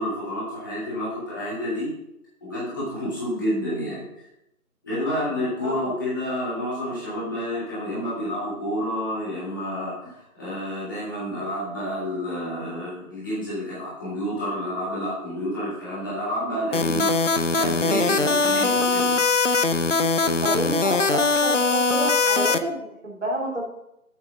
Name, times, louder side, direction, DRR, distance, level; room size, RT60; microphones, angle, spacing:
voice 1, 0.0-1.9 2.4-4.3 4.8-17.1 17.6-19.1, equal, 15° left, -10 dB, 2.5 m, -29 dB
voice 2, 5.6-6.0 20.4-23.6, right 1 dB, 50° right, -2 dB, 3.2 m, -29 dB
sound 1, 16.7-22.6, left 4 dB, 55° left, 0.7 m, -21 dB
8.5 x 7.3 x 5.5 m, 0.82 s
figure-of-eight pair, 165°, 45 cm